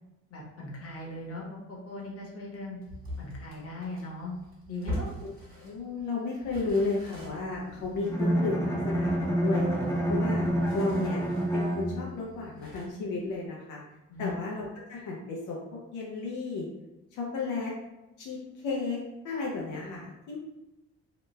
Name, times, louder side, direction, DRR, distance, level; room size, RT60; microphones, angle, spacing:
voice 1, 0.3-2.8 3.2-4.3 4.7-5.1 14.1-14.3, left 2 dB, 50° left, -2 dB, 1.0 m, -39 dB
sound 1, 2.8-6.0 6.4-11.6 11.9-12.0 12.6-12.8, equal, 30° right, 1.4 m, -42 dB
voice 2, 5.6-9.6 10.1-10.5 10.7-11.2 11.5-13.8 14.2-16.7 17.1-17.7 18.2-19.0 19.2-20.4, left 3 dB, 85° left, -3 dB, 0.6 m, -33 dB
Bowed string instrument, 8.0-12.3, right 1 dB, 10° left, 0.9 m, -28 dB
2.9 x 2.2 x 3.1 m, 0.99 s
cardioid pair, 90°, 30 cm